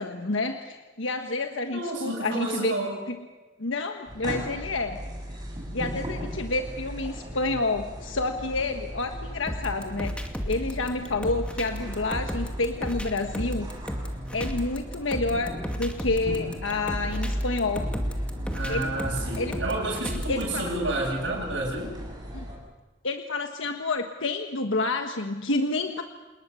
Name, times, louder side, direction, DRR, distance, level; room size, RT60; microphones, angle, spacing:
voice 1, 0.0-2.8 3.1-3.2 3.6-5.0 5.7-13.7 14.3-17.9 18.7-18.9 19.4-19.6 20.3-20.7 22.3-22.4 23.0-26.0, left 3 dB, 90° left, 5 dB, 1.4 m, -29 dB
voice 2, 1.7-3.0 18.5-21.9, right 2 dB, 70° right, -5 dB, 8.0 m, -30 dB
sound 1, 4.1-22.6, equal, 25° right, 7.8 m, -36 dB
sound 2, 9.5-20.6, equal, 5° left, 2.4 m, -33 dB
28.5 x 20.0 x 7.0 m, 1.2 s
head